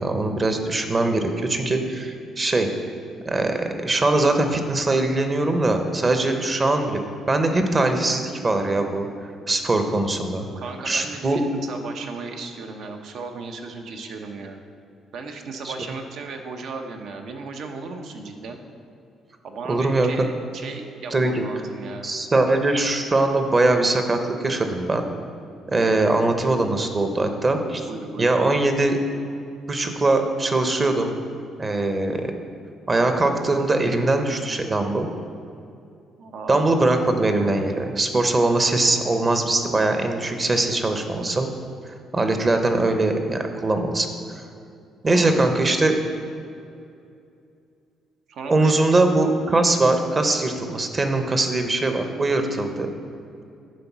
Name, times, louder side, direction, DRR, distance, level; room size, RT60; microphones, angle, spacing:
voice 1, 0.0-2.7 3.2-7.0 7.3-9.1 9.5-10.5 10.8-11.4 15.6-15.7 19.7-20.3 21.1-21.5 22.0-25.0 25.7-27.9 28.2-29.0 29.7-31.1 31.6-32.3 32.9-35.1 36.5-41.5 42.1-44.1 44.3-44.4 45.0-46.0 48.5-52.9, right 2 dB, 30° right, 6 dB, 0.8 m, -21 dB
voice 2, 10.6-14.6 15.1-18.6 19.4-22.1 27.9-28.6 36.2-36.6 45.1-45.5 48.3-49.0, right 4 dB, 70° right, 4 dB, 0.8 m, -36 dB
9.5 x 3.9 x 6.0 m, 2.5 s
cardioid pair, 105°, 0 cm